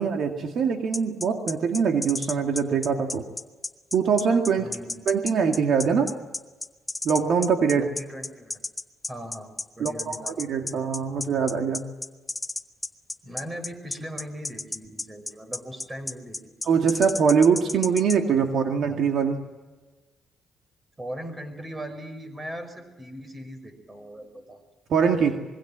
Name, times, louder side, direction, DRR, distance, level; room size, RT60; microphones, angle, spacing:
voice 1, 0.0-3.3 3.9-4.7 5.1-6.1 7.0-7.9 9.8-11.8 16.6-19.4 24.9-25.4, right 6 dB, 65° right, 4 dB, 2.2 m, -23 dB
sound 1, 0.9-18.2, left 3 dB, 20° left, 1.2 m, -32 dB
voice 2, 4.6-5.1 7.8-8.6 9.1-10.4 13.2-16.4 21.0-24.6, equal, 20° right, 8 dB, 5.7 m, -39 dB
25.0 x 22.5 x 7.6 m, 1.2 s
cardioid pair, 90°, 0 cm